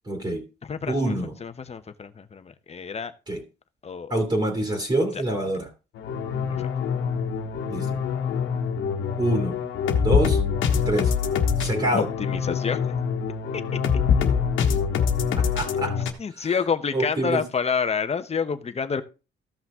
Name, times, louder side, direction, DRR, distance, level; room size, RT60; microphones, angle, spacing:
voice 1, 0.1-0.4 0.9-1.3 3.3-3.4 4.1-5.7 7.7-7.9 9.2-9.6 10.0-10.4 10.8-11.1 11.6-12.1 15.4-16.0 16.4-16.5 16.9-17.4, right 1 dB, 25° right, 2 dB, 2.8 m, -25 dB
voice 2, 0.6-1.1 1.4-3.1 3.8-4.2 5.1-5.2 6.5-6.7 11.9-12.9 13.5-13.6 16.2-19.0, left 6 dB, 30° left, 10 dB, 1.0 m, -28 dB
sound 1, 6.0-16.1, left 6 dB, 80° left, 1.3 m, -24 dB
14.5 x 5.7 x 3.6 m, 0.31 s
cardioid pair, 90°, 20 cm